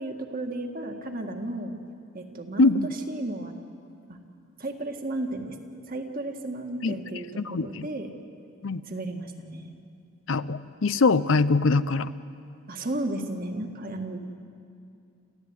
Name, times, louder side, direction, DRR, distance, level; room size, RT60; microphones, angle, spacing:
voice 1, 0.0-1.8 2.1-2.7 3.1-3.5 4.1-4.2 4.6-5.6 5.9-8.1 8.9-9.7 12.7-14.2, right 1 dB, 40° right, 4 dB, 1.8 m, -33 dB
voice 2, 7.4-7.9 8.6-8.8 10.3-12.1, left 3 dB, 65° left, 14 dB, 0.6 m, -23 dB
27.5 x 15.0 x 9.7 m, 2.5 s
head